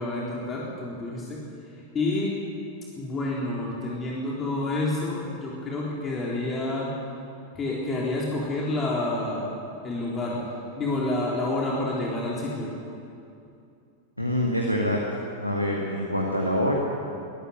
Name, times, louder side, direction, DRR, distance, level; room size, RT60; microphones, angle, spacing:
voice 1, 0.0-1.4 1.9-2.3 3.0-6.9 7.6-9.5 9.8-10.4 10.7-12.7, left 2 dB, 25° left, -4 dB, 3.9 m, -28 dB
voice 2, 14.2-15.0 15.4-16.8, equal, 90° left, -1 dB, 2.1 m, -25 dB
23.0 x 14.0 x 8.3 m, 2.6 s
figure-of-eight pair, 90°, 0 cm